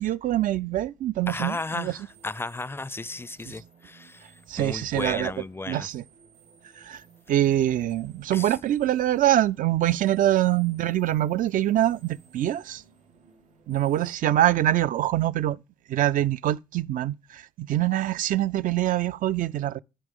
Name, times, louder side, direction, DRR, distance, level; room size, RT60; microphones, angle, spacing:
voice 1, 0.0-1.9 4.5-5.3 5.7-6.0 6.8-7.0 7.3-12.8 13.7-15.6 15.9-19.8, right 13 dB, 65° right, 0.4 m, -24 dB
voice 2, 1.3-4.3 4.6-5.9 8.3-8.6, left 2 dB, 15° left, 0.4 m, -34 dB
sound 1, 1.4-14.2, right 6 dB, 90° right, 2.7 m, -57 dB
13.0 x 5.1 x 3.6 m
supercardioid pair, 55°, 15 cm